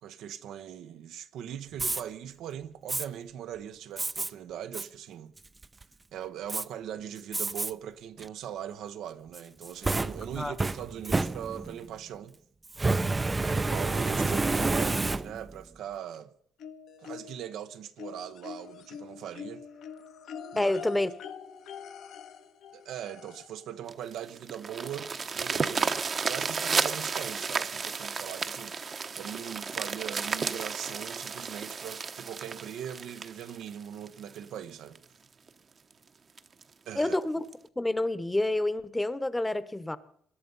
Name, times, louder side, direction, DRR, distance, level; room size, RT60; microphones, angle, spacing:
voice 1, 0.0-5.3 6.1-12.4 13.4-16.3 17.0-19.6 20.5-20.7 22.7-35.0 36.9-37.2, right 10 dB, 80° right, 0.9 m, -40 dB
Fire, 1.7-2.0 2.9-3.1 4.0-4.3 4.7-4.9 5.4-5.8 6.5-6.6 7.3-7.7 8.2-8.3 9.3-11.8 12.7-15.6, right 3 dB, 20° right, 0.6 m, -29 dB
sound 1, 16.6-17.6 18.0-23.7 24.9-25.0 25.4-25.5, left 7 dB, 75° left, 1.4 m, -45 dB
voice 2, 20.6-21.1 37.0-37.4 37.8-40.0, left 1 dB, 10° left, 1.0 m, -28 dB
sound 2, 23.9-34.4 34.9-35.0 35.5-35.6 35.9-36.0 36.4-36.6 37.5-37.6, right 5 dB, 45° right, 1.0 m, -33 dB
21.5 x 11.5 x 5.4 m
cardioid pair, 90°, 0 cm